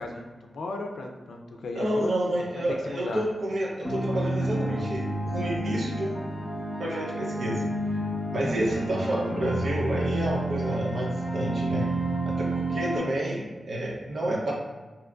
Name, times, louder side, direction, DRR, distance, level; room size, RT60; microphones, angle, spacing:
voice 1, 0.0-2.3 2.9-3.2, left 2 dB, 90° left, 3 dB, 0.4 m, -35 dB
voice 2, 1.7-6.2 6.8-7.6 8.3-11.9 12.2-14.5, right 1 dB, 60° right, -3 dB, 0.6 m, -29 dB
sound 1, 3.8-13.0, right 1 dB, 5° right, 0.7 m, -30 dB
3.6 x 2.9 x 2.2 m, 1.3 s
wide cardioid pair, 115°, 0 cm